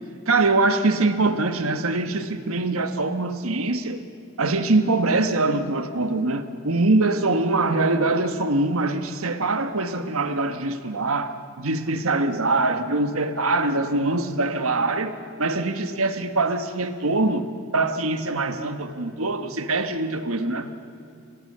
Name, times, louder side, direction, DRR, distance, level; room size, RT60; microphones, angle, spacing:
voice 1, 0.3-4.0 4.4-20.7, right 2 dB, 85° right, 1.5 m, -23 dB
26.0 x 18.0 x 6.8 m
head